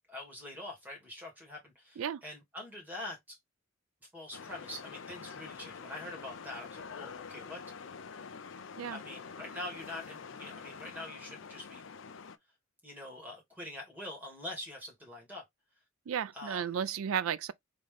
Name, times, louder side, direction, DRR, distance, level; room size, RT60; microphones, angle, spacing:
voice 1, 0.1-3.4 4.0-7.6 8.9-11.8 12.8-15.4 16.3-16.8, left 1 dB, 10° right, 2.3 m, -44 dB
sound 1, 4.3-12.4, left 5 dB, 60° left, 0.5 m, -46 dB
voice 2, 16.1-17.5, right 8 dB, 75° right, 0.4 m, -33 dB
3.8 x 3.7 x 3.4 m
head